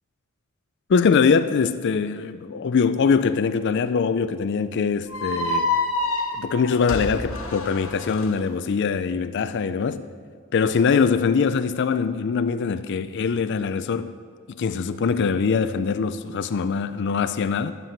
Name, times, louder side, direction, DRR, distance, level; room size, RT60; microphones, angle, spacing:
voice 1, 0.9-5.7 6.4-10.1 10.5-14.1 14.6-17.7, left 5 dB, 55° left, 0.4 m, -22 dB
sound 1, 5.1-8.3, left 2 dB, 75° left, 1.6 m, -27 dB
12.5 x 7.6 x 8.9 m
head